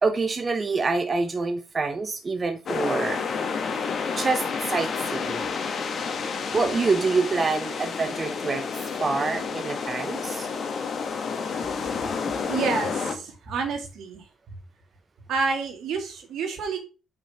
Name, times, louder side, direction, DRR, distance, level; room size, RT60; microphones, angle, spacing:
voice 1, 0.0-3.2 4.2-5.5 6.5-8.6 9.0-10.5, right 4 dB, 35° right, 8 dB, 0.9 m, -26 dB
sound 1, 2.7-13.1, left 5 dB, 55° left, 1.6 m, -30 dB
voice 2, 12.5-14.3 15.3-16.8, right 5 dB, 75° right, 4 dB, 2.2 m, -28 dB
5.7 x 5.6 x 5.8 m, 0.33 s
supercardioid pair, 65°, 0 cm